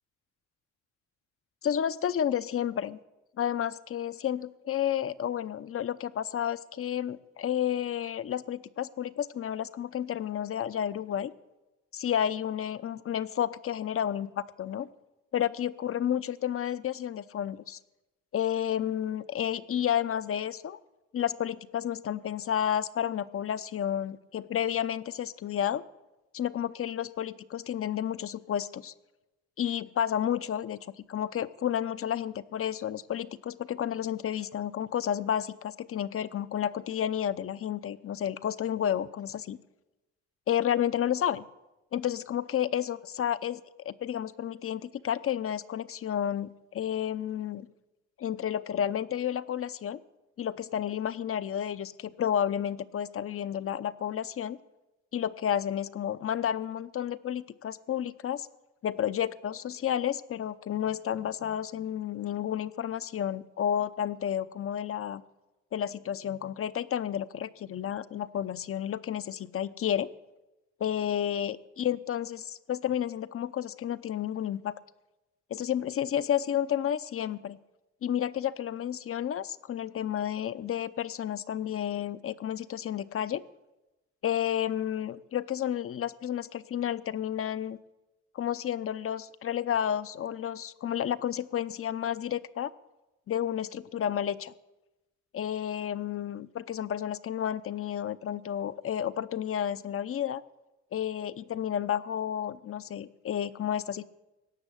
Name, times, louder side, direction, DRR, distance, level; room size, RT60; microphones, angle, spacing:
voice 1, 1.6-3.0 3.4-11.3 11.9-14.9 15.3-17.8 18.3-20.8 21.1-25.8 26.3-28.9 29.6-30.8 31.1-39.6 40.5-41.4 41.9-47.7 48.2-50.0 50.4-54.6 55.1-58.5 58.8-65.2 65.7-70.1 70.8-74.8 75.5-77.6 78.0-83.4 84.2-87.8 88.3-92.7 93.3-94.5 95.3-100.4 100.9-104.1, left 10 dB, 45° left, 16 dB, 0.7 m, -31 dB
17.5 x 7.2 x 10.0 m, 1.0 s
cardioid pair, 90°, 30 cm